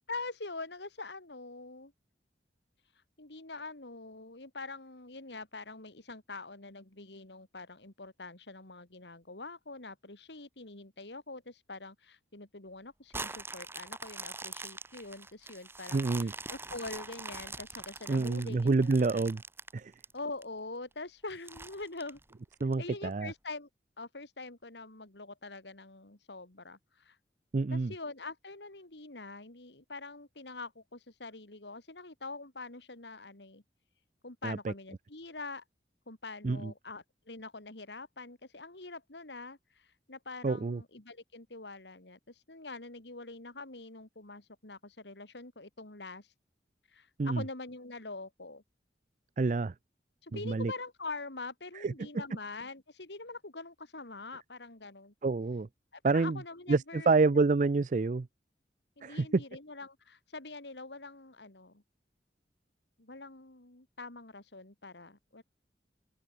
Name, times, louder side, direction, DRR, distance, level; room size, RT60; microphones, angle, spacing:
voice 1, 0.0-1.9 3.2-18.9 20.1-22.2 22.8-23.7 24.0-27.2 27.7-33.6 34.2-35.6 36.1-46.3 46.9-48.6 50.2-55.1 55.9-57.4 59.0-61.8 63.0-65.4, left 3 dB, 80° left, 2.9 m, -44 dB
sound 1, 13.1-20.4 20.9-21.0 21.5-22.7 23.3-23.4, right 3 dB, 15° right, 1.4 m, -43 dB
voice 2, 15.9-16.3 18.1-19.4 19.7-19.9 22.6-23.3 27.5-27.9 34.4-34.7 36.4-36.7 40.4-40.8 47.2-47.4 49.4-49.7 50.3-50.7 51.8-51.9 55.2-55.7 56.0-56.4 56.7-58.3 59.0-59.4, right 3 dB, 45° right, 0.4 m, -28 dB
open air
head